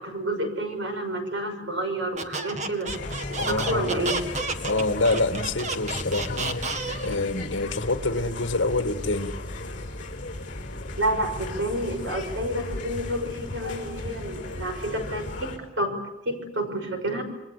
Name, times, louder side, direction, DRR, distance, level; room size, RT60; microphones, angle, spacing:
voice 1, 0.0-2.9 3.3-4.3 11.0-16.0 16.3-17.2, right 1 dB, 70° right, 6.0 m, -29 dB
Squeak, 2.1-7.2, right 3 dB, 40° right, 1.9 m, -31 dB
sound 1, 2.6-5.6, left 2 dB, 15° left, 5.6 m, -42 dB
sound 2, 2.9-15.6, left 2 dB, 45° left, 5.2 m, -35 dB
voice 2, 3.4-3.9 4.6-6.7 7.0-9.4, left 2 dB, 70° left, 1.8 m, -26 dB
28.0 x 23.0 x 8.5 m
head